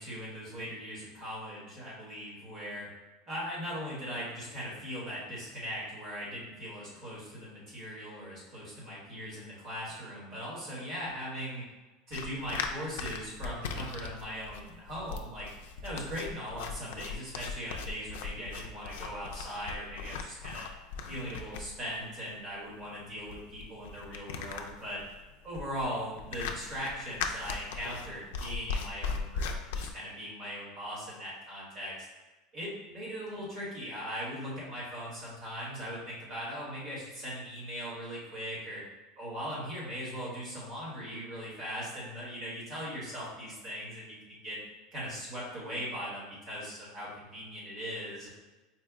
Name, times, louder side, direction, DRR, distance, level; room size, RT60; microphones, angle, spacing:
voice 1, 0.0-2.9 3.3-11.6 12.1-15.5 15.8-20.7 21.1-25.0 25.4-31.9 32.5-38.8 39.2-44.6 44.9-48.3, equal, 30° right, -6 dB, 1.3 m, -39 dB
sound 1, 12.1-29.9, left 5 dB, 90° left, 0.3 m, -39 dB
4.4 x 2.0 x 3.5 m, 1.2 s
supercardioid pair, 175°, 0 cm